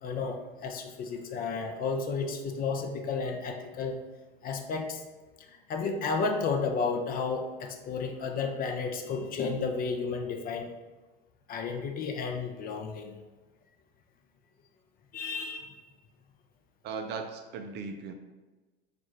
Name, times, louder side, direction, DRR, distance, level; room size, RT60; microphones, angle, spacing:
voice 1, 0.0-4.0 4.4-5.0 5.5-10.7 11.5-13.1 15.1-15.8, left 4 dB, 30° left, 4 dB, 0.5 m, -32 dB
voice 2, 16.8-18.1, right 5 dB, 35° right, 5 dB, 0.4 m, -37 dB
6.2 x 2.5 x 3.2 m, 1.2 s
hypercardioid pair, 90°, 30 cm